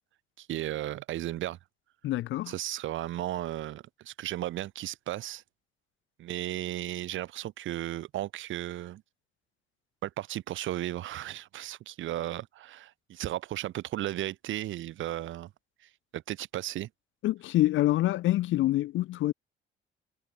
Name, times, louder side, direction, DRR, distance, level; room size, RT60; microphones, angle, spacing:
voice 1, 0.4-1.6 2.5-5.4 6.2-9.0 10.0-15.5 16.1-16.9, right 14 dB, 75° right, 1.1 m, -35 dB
voice 2, 2.0-2.5 17.2-19.3, left 15 dB, 75° left, 0.6 m, -26 dB
cardioid pair, 90°, 20 cm